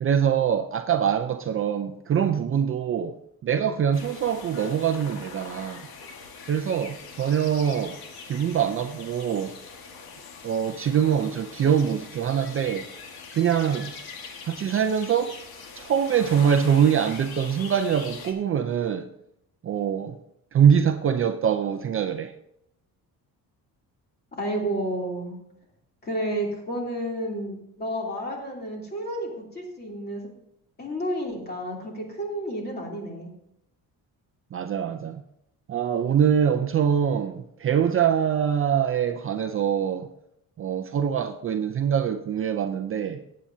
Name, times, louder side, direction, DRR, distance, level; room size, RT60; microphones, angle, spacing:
voice 1, 0.0-3.2 3.4-5.9 6.5-8.0 8.3-9.5 10.4-12.9 13.3-13.9 14.4-15.4 15.7-19.1 19.6-20.2 20.5-22.3 34.5-35.2 35.7-40.1 40.6-43.2, right 8 dB, 35° right, 0.5 m, -24 dB
sound 1, 3.9-18.3, left 5 dB, 75° left, 1.7 m, -42 dB
voice 2, 24.4-25.4 26.0-30.3 30.8-33.3, right 1 dB, 25° left, 3.0 m, -31 dB
18.5 x 8.6 x 2.7 m
cardioid pair, 165°, 36 cm